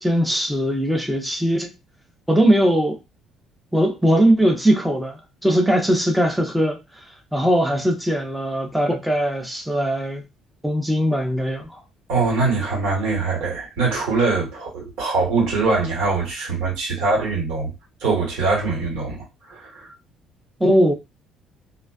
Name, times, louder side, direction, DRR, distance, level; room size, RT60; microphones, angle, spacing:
voice 1, 0.0-1.7 2.3-3.0 3.7-6.8 7.3-10.2 10.6-11.8 20.6-20.9, equal, ahead, 0.4 m, -20 dB
voice 2, 12.1-17.7 18.0-19.9, right 3 dB, 85° right, 1.4 m, -23 dB
2.4 x 2.3 x 2.3 m
cardioid pair, 175°, 0 cm